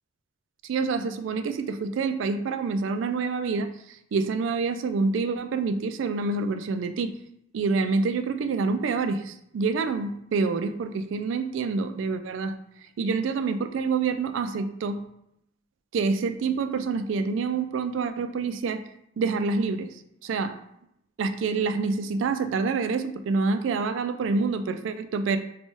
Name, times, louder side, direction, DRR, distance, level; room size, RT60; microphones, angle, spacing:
voice 1, 0.6-7.2 7.5-12.5 13.0-15.1 15.9-18.8 19.2-19.9 20.2-20.6 21.2-25.4, right 4 dB, 75° right, 9 dB, 0.3 m, -27 dB
4.2 x 2.2 x 3.0 m, 0.76 s
head